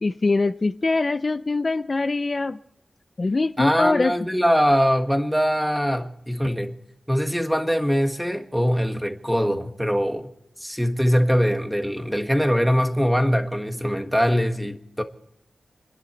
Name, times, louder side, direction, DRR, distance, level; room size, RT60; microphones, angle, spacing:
voice 1, 0.0-2.6 3.2-4.1, left 3 dB, 35° left, 0.5 m, -23 dB
voice 2, 3.6-6.7 7.1-10.3 10.6-15.0, equal, ahead, 1.6 m, -22 dB
28.5 x 11.0 x 4.4 m
wide cardioid pair, 100°, 0 cm